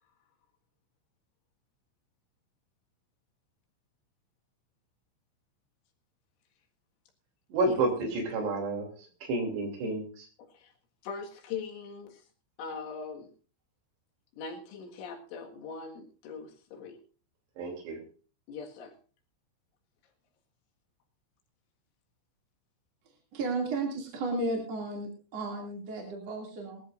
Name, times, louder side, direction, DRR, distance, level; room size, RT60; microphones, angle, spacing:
voice 1, 7.5-10.3 17.6-18.0, right 2 dB, 65° right, 4 dB, 4.9 m, -30 dB
voice 2, 10.4-10.7 11.0-12.2 12.6-13.3 14.4-17.0 18.5-18.9, left 5 dB, 80° left, 2 dB, 4.2 m, -41 dB
voice 3, 23.3-26.8, right 2 dB, 40° right, 1 dB, 2.9 m, -34 dB
21.5 x 14.0 x 2.5 m, 0.37 s
omnidirectional pair, 5.4 m